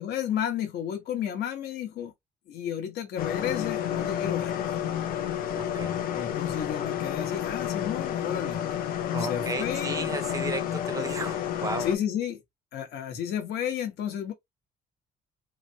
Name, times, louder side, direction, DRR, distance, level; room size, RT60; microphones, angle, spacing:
voice 1, 0.0-2.1 2.5-4.7 6.1-8.6 9.3-10.1 11.8-12.4 12.7-14.3, left 9 dB, 80° left, 1.0 m, -32 dB
sound 1, 3.2-12.0, left 10 dB, 60° left, 0.5 m, -30 dB
voice 2, 5.6-6.0 9.1-11.9, right 4 dB, 20° right, 0.4 m, -34 dB
3.2 x 2.1 x 2.7 m
cardioid pair, 165°, 16 cm